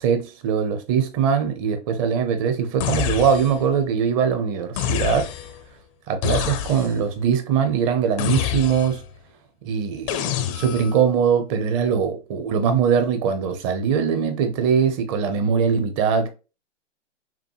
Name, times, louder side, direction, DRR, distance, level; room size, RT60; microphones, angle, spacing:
voice 1, 0.0-5.3 6.1-9.0 9.6-16.3, right 7 dB, 30° right, 0.7 m, -21 dB
sound 1, 2.8-3.7 4.8-5.6 6.2-7.1 8.2-9.1 10.1-11.0, left 10 dB, 25° left, 0.5 m, -27 dB
5.8 x 2.1 x 3.0 m
hypercardioid pair, 130°, 37 cm